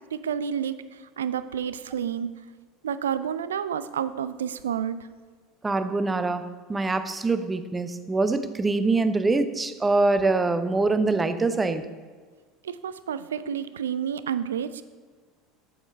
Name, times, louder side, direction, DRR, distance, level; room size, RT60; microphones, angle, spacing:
voice 1, 0.1-2.3 2.8-5.0 12.6-14.8, right 8 dB, 75° right, 14 dB, 0.3 m, -30 dB
voice 2, 5.6-11.9, right 3 dB, 15° right, 11 dB, 0.6 m, -24 dB
8.1 x 7.2 x 4.2 m, 1.5 s
figure-of-eight pair, 70°, 0 cm